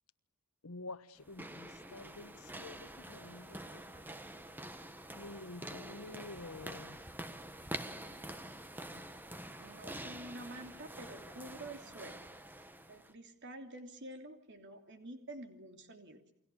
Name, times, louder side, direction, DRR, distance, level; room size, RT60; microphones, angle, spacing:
voice 1, 0.6-3.8 5.1-7.0, left 2 dB, 75° left, 1.2 m, -49 dB
sound 1, 1.2-13.1, right 1 dB, 10° right, 1.4 m, -47 dB
voice 2, 9.6-12.2 12.9-16.2, right 1 dB, 55° right, 3.1 m, -48 dB
29.5 x 22.5 x 8.5 m
head